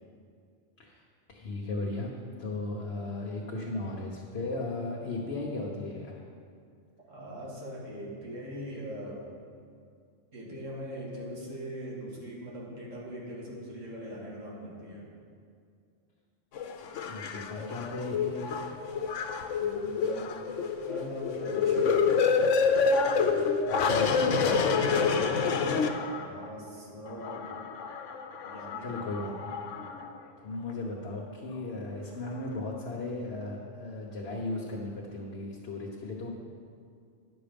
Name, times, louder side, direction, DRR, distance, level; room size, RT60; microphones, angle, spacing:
voice 1, 1.3-2.1 2.4-6.2 17.1-18.6 23.6-24.5 28.8-29.5 30.4-36.3, left 2 dB, 60° left, -3 dB, 1.3 m, -36 dB
voice 2, 7.1-9.3 10.3-15.1 19.6-20.3 20.9-22.2 26.0-27.5 28.4-29.0 29.6-29.8, equal, 85° right, -4 dB, 2.3 m, -41 dB
sound 1, 16.6-26.5 27.1-30.1 30.7-30.8, left 5 dB, 80° left, 1.0 m, -28 dB
10.5 x 6.8 x 5.2 m, 2.3 s
omnidirectional pair, 1.3 m